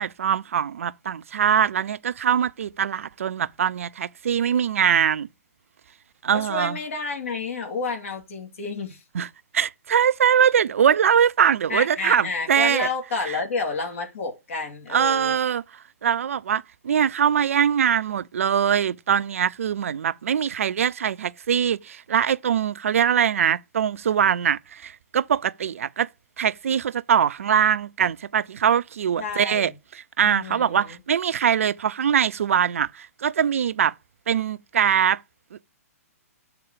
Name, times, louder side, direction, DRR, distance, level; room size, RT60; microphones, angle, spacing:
voice 1, 0.0-5.3 6.2-6.8 9.1-9.3 9.5-12.9 13.3-13.4 14.9-15.6 16.0-26.1 26.4-29.7 30.2-33.9 34.3-35.2, right 8 dB, 60° right, 0.4 m, -22 dB
voice 2, 6.3-9.0 11.7-15.4 29.2-29.7 30.3-31.0, left 4 dB, 55° left, 2.7 m, -30 dB
7.0 x 4.2 x 6.7 m
figure-of-eight pair, 120°, 8 cm